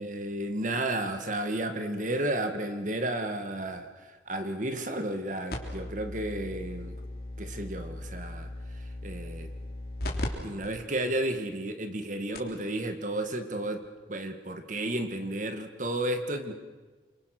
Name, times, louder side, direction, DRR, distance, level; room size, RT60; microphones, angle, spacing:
voice 1, 0.0-7.0 7.4-8.5 9.0-9.5 10.4-13.8 14.1-16.5, right 1 dB, 45° right, 7 dB, 2.0 m, -32 dB
sound 1, 5.5-10.3 10.6-10.7 11.4-11.5 12.0-12.1 12.3-12.6 13.8-13.9, left 1 dB, 55° left, 3.4 m, -37 dB
28.0 x 25.0 x 6.1 m, 1.3 s
head